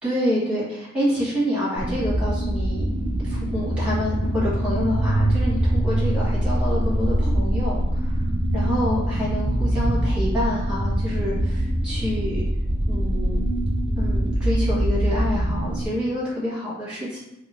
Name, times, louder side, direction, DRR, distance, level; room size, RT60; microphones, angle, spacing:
voice 1, 0.0-2.9 3.2-8.2 8.5-12.4 12.8-13.4 14.0-17.2, equal, 5° right, -9 dB, 1.3 m, -27 dB
sound 1, 1.8-15.9, right 1 dB, 25° right, 0.3 m, -23 dB
2.7 x 2.4 x 2.9 m, 0.91 s
head